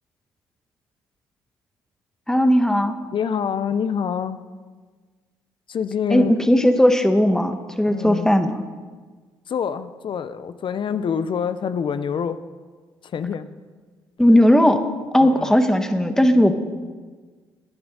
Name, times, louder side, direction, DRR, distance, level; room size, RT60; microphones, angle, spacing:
voice 1, 2.3-3.0 6.1-8.6 14.2-14.8 15.1-16.5, equal, 5° left, 8 dB, 1.4 m, -17 dB
voice 2, 3.1-4.4 5.7-6.4 7.9-8.3 9.5-12.4 13.0-13.5 15.2-15.5, left 7 dB, 55° left, 12 dB, 0.8 m, -26 dB
19.5 x 10.5 x 4.1 m, 1.4 s
hypercardioid pair, 55°, 10 cm